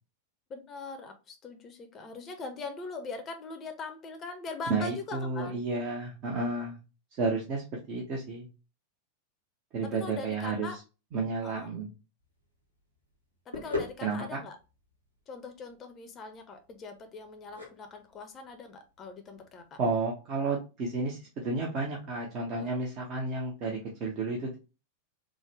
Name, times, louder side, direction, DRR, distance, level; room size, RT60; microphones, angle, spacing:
voice 1, 0.5-5.6 10.0-10.8 11.4-11.7 13.5-14.6 15.3-19.8 22.6-22.7, left 4 dB, 25° left, 0.6 m, -41 dB
voice 2, 4.7-6.8 7.2-8.5 9.7-10.7 11.1-11.9 14.0-14.4 19.8-24.6, right 3 dB, 40° right, 0.7 m, -32 dB
sound 1, 12.2-20.1, left 3 dB, 90° right, 1.0 m, -42 dB
3.6 x 2.1 x 3.1 m
figure-of-eight pair, 90°, 0 cm